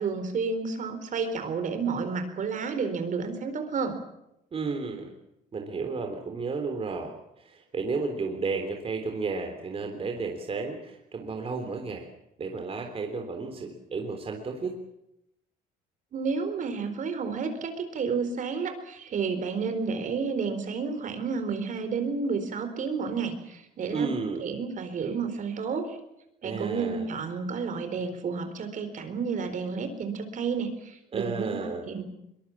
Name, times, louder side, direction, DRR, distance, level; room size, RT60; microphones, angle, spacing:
voice 1, 0.0-4.0 16.1-24.1 24.4-26.0 26.4-31.6 31.8-32.0, right 5 dB, 50° right, 8 dB, 4.3 m, -31 dB
voice 2, 4.5-5.1 5.5-12.1 12.4-14.8 23.9-24.4 26.4-27.1 31.1-31.9, right 4 dB, 35° right, 4 dB, 3.7 m, -32 dB
23.0 x 22.0 x 7.4 m, 0.83 s
cardioid pair, 110°, 17 cm